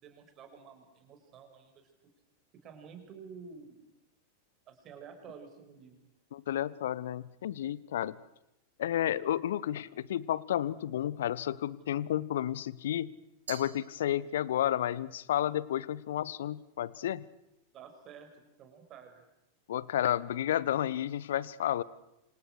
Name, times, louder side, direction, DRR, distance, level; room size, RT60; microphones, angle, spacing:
voice 1, 0.0-1.9 2.6-3.8 4.7-6.0 17.7-18.3 18.6-19.2, right 6 dB, 30° right, 6 dB, 6.3 m, -50 dB
voice 2, 6.3-8.1 8.8-13.1 13.5-17.2 19.7-21.8, left 11 dB, 60° left, 21 dB, 1.0 m, -31 dB
Glass, 13.5-14.7, right 8 dB, 65° right, 2.5 m, -48 dB
29.0 x 27.0 x 6.4 m, 0.88 s
figure-of-eight pair, 90°, 0 cm